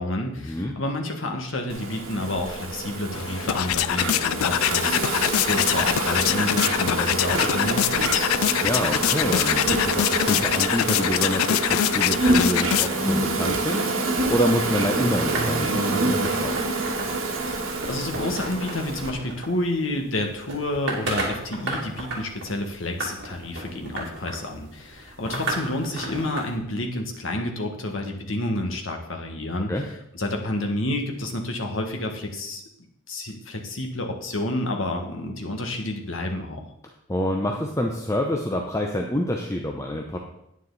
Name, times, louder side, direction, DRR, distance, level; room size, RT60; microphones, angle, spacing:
voice 1, 0.0-8.3 17.3-29.7 30.1-32.6 33.1-36.6, left 1 dB, 70° left, 2 dB, 1.6 m, -29 dB
Insect, 1.7-19.1, right 2 dB, 75° right, 1.7 m, -26 dB
sound 1, 3.1-13.2, left 12 dB, 85° left, 0.3 m, -24 dB
voice 2, 8.4-16.6 29.7-29.8 37.1-40.2, left 1 dB, 15° left, 2 dB, 0.7 m, -27 dB
sound 2, 14.5-26.6, right 2 dB, 55° right, 2.6 m, -35 dB
9.6 x 9.1 x 4.0 m, 0.81 s
head